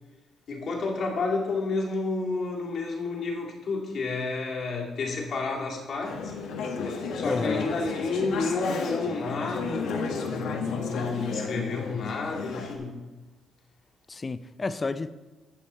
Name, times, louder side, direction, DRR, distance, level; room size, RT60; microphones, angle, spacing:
voice 1, 0.5-6.3 6.8-13.0, left 3 dB, 60° left, 2.2 m, -30 dB
Conversation / Chatter, 6.0-12.8, left 4 dB, 85° left, 1.3 m, -33 dB
voice 2, 7.2-7.7 14.1-15.1, left 3 dB, 30° left, 0.5 m, -31 dB
15.0 x 5.4 x 4.2 m
cardioid pair, 90°, 0 cm